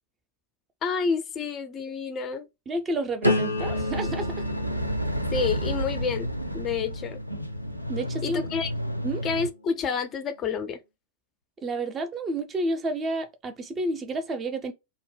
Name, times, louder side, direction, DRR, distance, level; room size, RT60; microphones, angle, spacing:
voice 1, 0.8-2.5 5.3-6.3 6.5-7.2 8.2-8.7 9.2-10.8, left 5 dB, 30° left, 0.4 m, -29 dB
voice 2, 2.7-4.4 7.9-8.4 9.0-9.2 11.6-14.7, right 1 dB, 25° right, 0.5 m, -30 dB
sound 1, 3.2-9.1 9.6-10.0, left 1 dB, 90° left, 0.5 m, -32 dB
sound 2, 3.6-9.5, equal, 90° right, 0.3 m, -31 dB
2.1 x 2.0 x 3.2 m
figure-of-eight pair, 90°, 0 cm